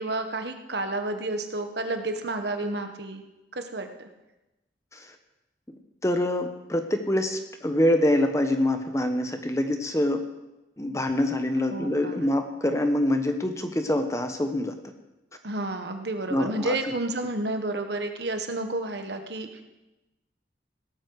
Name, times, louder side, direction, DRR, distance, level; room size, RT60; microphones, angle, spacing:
voice 1, 0.0-3.2 3.5-3.9 11.7-12.3 15.4-19.6, right 2 dB, 70° right, 6 dB, 1.4 m, -30 dB
voice 2, 6.0-10.2 10.8-14.7 16.3-16.8, left 1 dB, 15° left, 6 dB, 1.1 m, -25 dB
17.5 x 13.0 x 4.8 m, 1.0 s
head